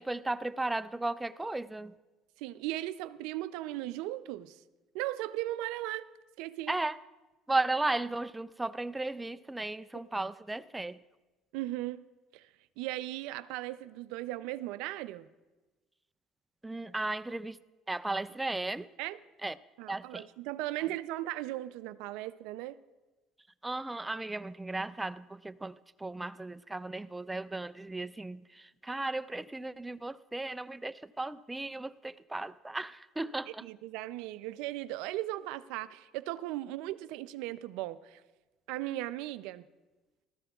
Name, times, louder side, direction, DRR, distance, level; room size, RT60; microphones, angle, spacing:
voice 1, 0.0-1.9 6.7-7.0 7.5-11.0 16.6-17.6 17.9-18.9 19.4-19.5 19.9-20.3 23.6-33.6, right 2 dB, 10° right, 0.3 m, -35 dB
voice 2, 2.4-4.6 4.9-6.1 6.4-6.8 11.5-12.0 12.3-12.5 12.8-15.3 19.0-19.2 19.8-22.8 33.6-38.2 38.7-39.6, right 16 dB, 85° right, 0.4 m, -37 dB
18.5 x 13.5 x 2.3 m
cardioid pair, 120°, 0 cm